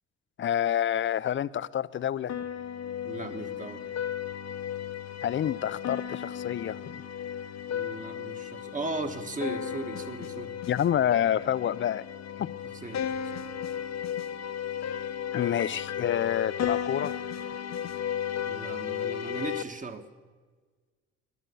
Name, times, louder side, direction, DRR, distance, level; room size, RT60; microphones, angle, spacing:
voice 1, 0.4-2.3 5.2-7.0 10.7-12.0 12.4-12.5 15.3-17.1, left 10 dB, 40° left, 0.4 m, -28 dB
sound 1, 2.3-19.6, left 9 dB, 60° left, 0.8 m, -34 dB
voice 2, 3.0-3.9 7.7-10.6 12.6-13.1 13.3-13.5 18.5-20.0, right 3 dB, 25° right, 1.3 m, -37 dB
19.0 x 10.5 x 6.9 m
cardioid pair, 90°, 30 cm